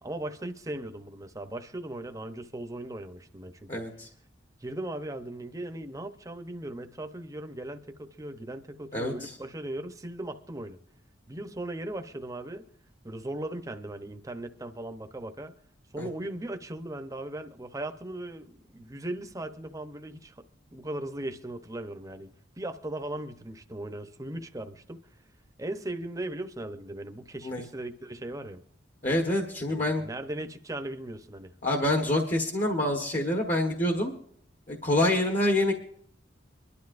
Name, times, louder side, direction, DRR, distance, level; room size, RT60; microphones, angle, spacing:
voice 1, 0.0-3.7 4.6-10.8 11.3-12.6 13.0-15.5 15.9-20.4 20.7-25.0 25.6-28.6 29.7-31.5, right 1 dB, 15° right, 0.8 m, -38 dB
voice 2, 3.7-4.1 8.9-9.4 16.0-16.1 27.4-27.6 29.0-30.0 31.6-34.1 34.7-35.7, left 1 dB, 40° left, 1.3 m, -26 dB
24.0 x 12.0 x 2.6 m
head